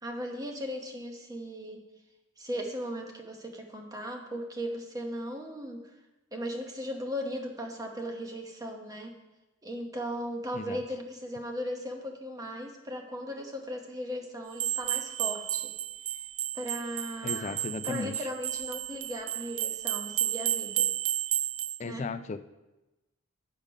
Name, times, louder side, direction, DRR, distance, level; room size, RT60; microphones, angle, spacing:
voice 1, 0.0-1.8 2.4-5.8 6.3-9.1 9.6-15.7 16.1-16.3 16.5-17.6 17.8-20.9 21.8-22.1, equal, 15° right, 2 dB, 0.9 m, -37 dB
sound 1, 14.5-21.8, right 12 dB, 60° right, 0.3 m, -32 dB
voice 2, 17.2-18.3 21.8-22.4, left 3 dB, 35° left, 11 dB, 0.3 m, -35 dB
8.6 x 5.1 x 5.3 m, 1.1 s
head